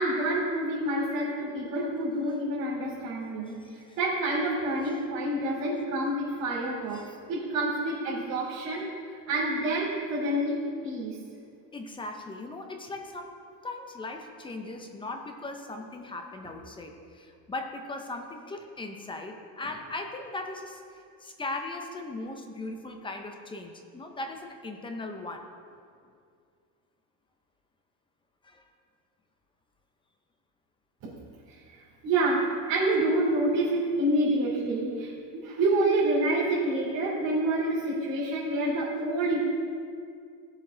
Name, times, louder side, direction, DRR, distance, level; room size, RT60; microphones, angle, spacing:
voice 1, 0.0-7.0 7.3-8.8 9.3-11.2 31.0-31.1 31.5-39.4, right 1 dB, 35° right, -9 dB, 3.2 m, -28 dB
voice 2, 3.2-4.0 4.8-5.0 6.9-7.2 11.7-13.3 13.6-25.5 28.4-28.7, left 2 dB, 10° left, 4 dB, 0.7 m, -39 dB
16.5 x 7.6 x 3.9 m, 2.3 s
supercardioid pair, 145°, 45 cm